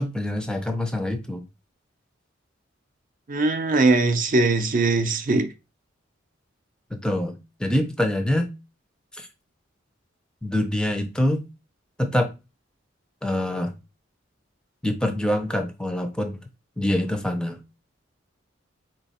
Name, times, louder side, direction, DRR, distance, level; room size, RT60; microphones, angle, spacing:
voice 1, 0.0-1.4 6.9-8.5 10.4-11.4 12.0-12.3 13.2-13.7 14.8-16.4 16.8-17.6, left 1 dB, 5° left, 0.5 m, -25 dB
voice 2, 3.3-5.5, right 3 dB, 45° right, 0.5 m, -21 dB
4.1 x 3.0 x 4.2 m
head